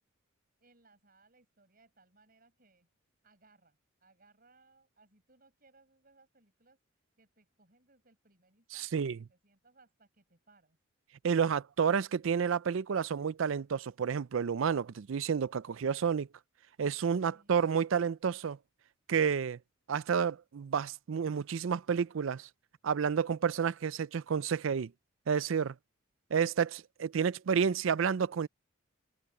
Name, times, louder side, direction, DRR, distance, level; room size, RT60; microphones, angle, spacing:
voice 1, 0.6-2.9 3.2-6.8 7.2-10.8 17.3-17.6, right 3 dB, 45° right, 5.6 m, -66 dB
voice 2, 8.7-9.2 11.2-16.3 16.8-18.6 19.1-19.6 19.9-22.5 22.8-24.9 25.3-25.7 26.3-28.5, right 7 dB, 75° right, 0.4 m, -30 dB
head